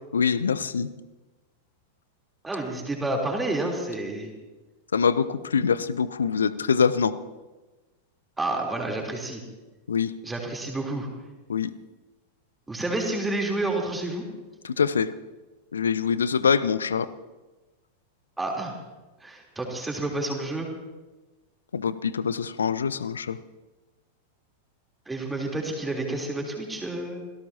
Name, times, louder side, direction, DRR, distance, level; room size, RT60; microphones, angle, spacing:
voice 1, 0.1-0.9 4.9-7.1 9.9-10.1 11.5-11.7 14.6-15.1 15.7-17.1 21.7-23.4, left 6 dB, 70° left, 16 dB, 0.7 m, -24 dB
voice 2, 2.4-4.3 8.4-9.4 10.2-11.1 12.7-14.2 18.4-18.7 19.2-20.7 25.1-27.2, right 2 dB, 10° right, 0 dB, 3.6 m, -29 dB
27.0 x 17.5 x 2.9 m, 1.2 s
figure-of-eight pair, 90°, 0 cm